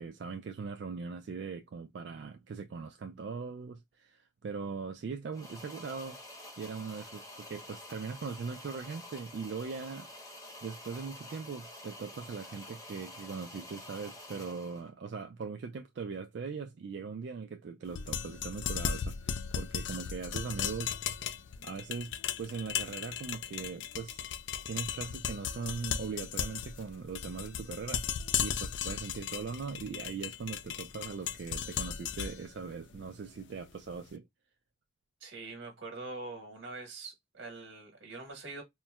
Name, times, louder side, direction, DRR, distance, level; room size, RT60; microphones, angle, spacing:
voice 1, 0.0-6.2 6.6-10.1 10.6-20.9 21.6-24.2 24.6-34.2, right 5 dB, 65° right, 0.3 m, -40 dB
sound 1, 5.3-14.9, left 1 dB, 20° left, 0.9 m, -49 dB
sound 2, 17.9-33.9, left 8 dB, 70° left, 0.3 m, -36 dB
voice 2, 35.2-38.6, right 3 dB, 90° right, 1.3 m, -44 dB
4.3 x 2.1 x 2.2 m
head